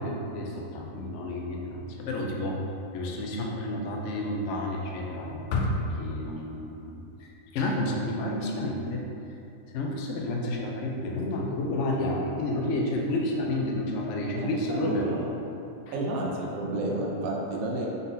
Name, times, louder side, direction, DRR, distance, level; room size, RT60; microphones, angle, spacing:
voice 1, 0.0-2.7 2.9-9.1 9.7-15.1, left 1 dB, 65° left, -1 dB, 0.8 m, -30 dB
voice 2, 14.3-15.4 15.9-17.9, right 2 dB, 75° right, -1 dB, 1.0 m, -31 dB
3.9 x 3.9 x 2.6 m, 2.8 s
omnidirectional pair, 1.5 m